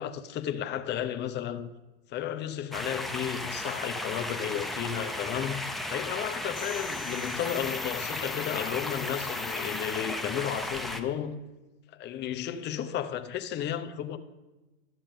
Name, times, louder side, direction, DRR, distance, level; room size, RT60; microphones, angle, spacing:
voice 1, 0.0-1.7 2.1-11.4 11.9-14.2, left 10 dB, 30° left, 0.8 m, -33 dB
sound 1, 2.7-11.0, left 1 dB, ahead, 0.7 m, -35 dB
sound 2, 6.6-10.4, left 15 dB, 55° left, 1.0 m, -42 dB
12.0 x 7.2 x 6.7 m
hypercardioid pair, 125°, 35 cm